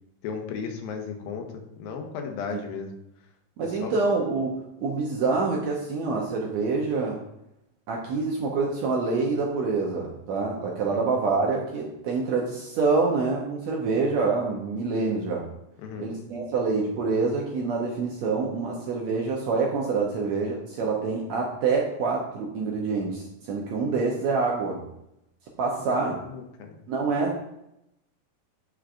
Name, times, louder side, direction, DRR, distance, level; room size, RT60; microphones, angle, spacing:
voice 1, 0.2-1.5 1.8-2.9 3.6-3.9 10.8-11.0 15.8-16.1 26.0-26.8, left 6 dB, 90° left, 4 dB, 2.7 m, -35 dB
voice 2, 3.6-7.2 7.9-15.4 16.0-24.8 25.6-26.2 26.9-27.4, right 4 dB, 75° right, -1 dB, 1.7 m, -26 dB
8.1 x 6.3 x 2.5 m, 0.83 s
omnidirectional pair, 4.0 m